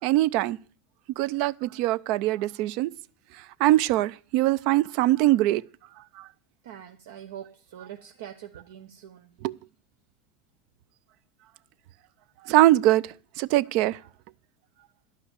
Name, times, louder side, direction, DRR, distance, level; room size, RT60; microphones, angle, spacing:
voice 1, 0.0-0.6 1.2-2.9 3.3-5.6 6.2-6.3 9.4-9.5 12.4-14.0, right 16 dB, 65° right, 0.5 m, -22 dB
voice 2, 6.6-9.4, right 10 dB, 80° right, 0.8 m, -43 dB
11.5 x 5.8 x 8.2 m
hypercardioid pair, 100°, 0 cm